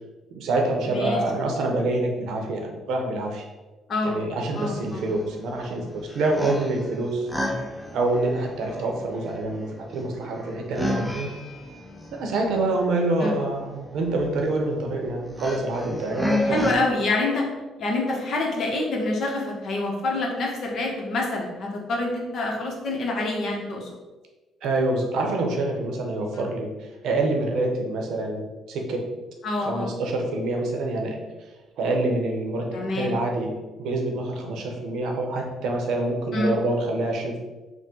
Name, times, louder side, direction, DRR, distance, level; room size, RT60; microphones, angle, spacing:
voice 1, 0.3-3.4 4.0-7.3 7.9-11.3 12.1-16.8 24.6-29.1 29.6-31.2 31.8-32.7 32.9-37.4, right 2 dB, 75° right, 2 dB, 0.7 m, -26 dB
voice 2, 0.9-1.2 3.9-4.2 4.6-5.1 13.2-13.3 16.5-17.5 17.8-23.9 29.4-29.9 32.7-33.1 36.3-36.5, left 2 dB, 60° left, 0 dB, 1.0 m, -26 dB
sound 1, 4.6-16.8, left 1 dB, 5° left, 0.6 m, -33 dB
3.5 x 2.2 x 4.3 m, 1.2 s
supercardioid pair, 80°, 0 cm